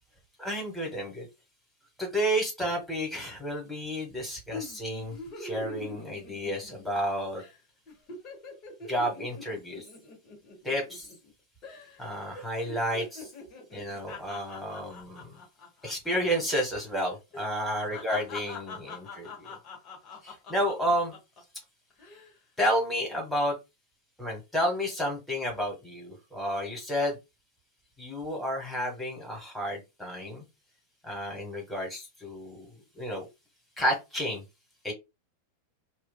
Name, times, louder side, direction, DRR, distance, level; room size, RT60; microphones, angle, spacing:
voice 1, 0.4-1.3 2.0-7.4 8.9-9.8 10.6-11.1 12.0-13.3 13.7-15.3 15.8-19.6 20.2-21.1 22.6-23.5 24.2-27.2 28.0-30.4 31.0-33.3 33.8-34.4 34.8-34.9, equal, 5° left, -1 dB, 1.4 m, -31 dB
sound 1, 4.5-7.0 7.4-7.6 7.9-11.3 11.6-12.0 12.3-16.4 16.7-16.9 17.3-21.4 21.9-22.3, left 3 dB, 35° left, 1.1 m, -43 dB
3.1 x 2.3 x 2.3 m, 0.24 s
figure-of-eight pair, 90°, 0 cm